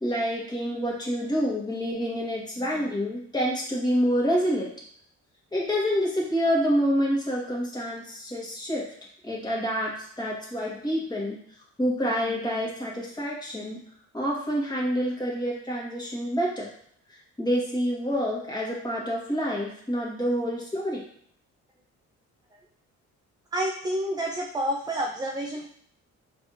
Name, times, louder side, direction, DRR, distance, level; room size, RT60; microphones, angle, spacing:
voice 1, 0.0-4.7 5.5-8.8 9.2-9.9 10.2-11.4 11.8-13.8 14.1-16.7 17.4-21.0, equal, 15° left, -4 dB, 1.6 m, -27 dB
voice 2, 23.5-25.7, right 1 dB, 15° right, 0 dB, 0.5 m, -29 dB
5.0 x 3.4 x 2.6 m, 0.63 s
cardioid pair, 90°, 30 cm